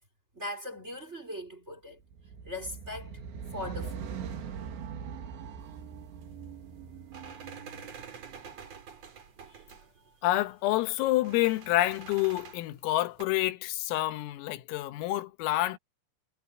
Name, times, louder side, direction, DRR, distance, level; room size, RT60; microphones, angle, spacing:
voice 1, 0.3-2.0 2.4-3.2 3.5-4.1 9.5-9.6 10.0-10.2, left 1 dB, 15° right, 3.4 m, -40 dB
sound 1, 2.1-8.6, right 7 dB, 65° right, 4.5 m, -42 dB
sound 2, 5.6-13.2, right 6 dB, 40° right, 2.9 m, -49 dB
voice 2, 10.2-15.8, left 16 dB, 90° left, 3.9 m, -28 dB
omnidirectional pair, 5.9 m